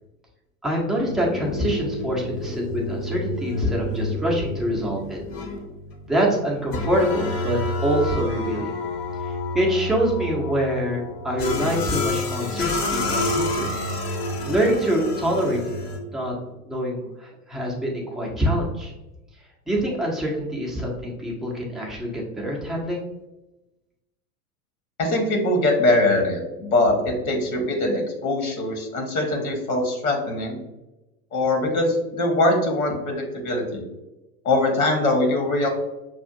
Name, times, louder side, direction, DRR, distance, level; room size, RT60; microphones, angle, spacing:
voice 1, 0.6-5.2 6.1-8.8 9.2-13.7 14.5-15.6 16.1-16.3 16.6-18.9 19.7-23.0, equal, ahead, -3 dB, 0.4 m, -25 dB
sound 1, 1.1-16.0, left 2 dB, 45° left, 0.8 m, -29 dB
voice 2, 25.0-30.6 31.3-33.8 34.4-35.7, left 2 dB, 65° left, 2 dB, 1.2 m, -22 dB
6.1 x 2.4 x 2.4 m, 1.0 s
figure-of-eight pair, 90°, 46 cm